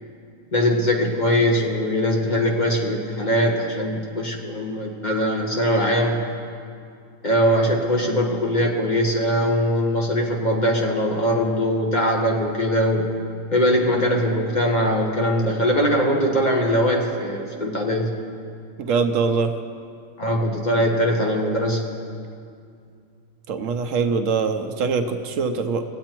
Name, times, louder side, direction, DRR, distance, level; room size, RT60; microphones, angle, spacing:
voice 1, 0.5-6.2 7.2-13.1 13.5-18.1 20.2-21.8, equal, 35° left, 0 dB, 1.1 m, -21 dB
voice 2, 18.8-19.5 23.5-25.8, right 5 dB, 70° right, 7 dB, 1.0 m, -23 dB
18.0 x 8.4 x 4.5 m, 2.3 s
omnidirectional pair, 1.4 m